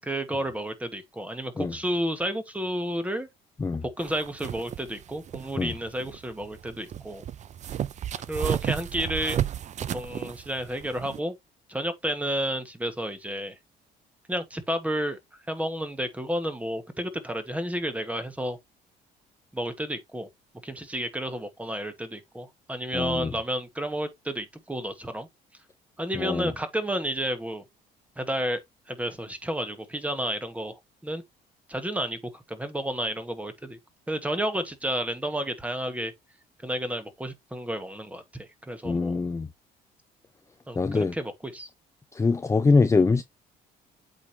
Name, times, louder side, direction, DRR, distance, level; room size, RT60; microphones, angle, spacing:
voice 1, 0.0-3.3 3.8-7.2 8.3-9.4 9.9-11.3 11.7-13.5 14.3-15.2 15.5-18.6 19.5-20.3 20.6-25.3 26.0-27.6 28.2-28.6 28.9-30.8 31.0-31.2 31.7-33.8 34.1-36.1 36.6-39.2 40.7-41.7, equal, 10° right, 1.6 m, -31 dB
sound 1, 4.0-11.2, right 10 dB, 45° right, 0.6 m, -34 dB
voice 2, 22.9-23.3 26.2-26.5 38.8-39.5 40.8-41.1 42.1-43.2, left 4 dB, 15° left, 0.6 m, -23 dB
8.2 x 5.0 x 2.9 m
cardioid pair, 110°, 17 cm